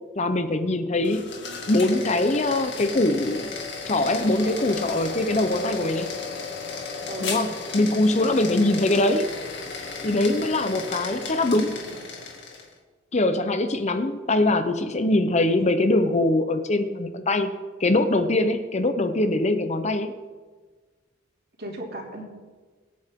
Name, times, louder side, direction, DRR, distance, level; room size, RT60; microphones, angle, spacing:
voice 1, 0.2-1.3 1.7-3.5 3.9-6.1 7.2-9.3 10.0-11.8 13.1-17.5 17.8-20.1, left 2 dB, 35° left, 9 dB, 0.8 m, -22 dB
sound 1, 1.0-12.7, left 4 dB, 60° left, 2.4 m, -34 dB
voice 2, 7.1-7.4 11.5-12.0 21.6-22.2, right 1 dB, 50° right, 0 dB, 2.9 m, -37 dB
23.0 x 9.1 x 3.7 m, 1.4 s
head